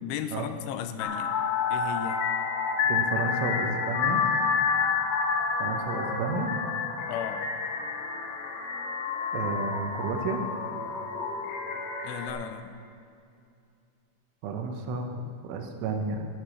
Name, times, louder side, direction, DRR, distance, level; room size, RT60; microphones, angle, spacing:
voice 1, 0.0-1.3 1.7-2.2 7.1-7.4 12.0-12.7, left 9 dB, 90° left, 9 dB, 3.1 m, -35 dB
sound 1, 1.0-12.3, left 5 dB, 65° left, 2.8 m, -29 dB
voice 2, 2.9-4.3 5.6-6.5 9.3-10.4 14.4-16.3, right 4 dB, 85° right, 4 dB, 3.6 m, -31 dB
11.5 x 11.0 x 6.4 m, 2.4 s
omnidirectional pair, 5.4 m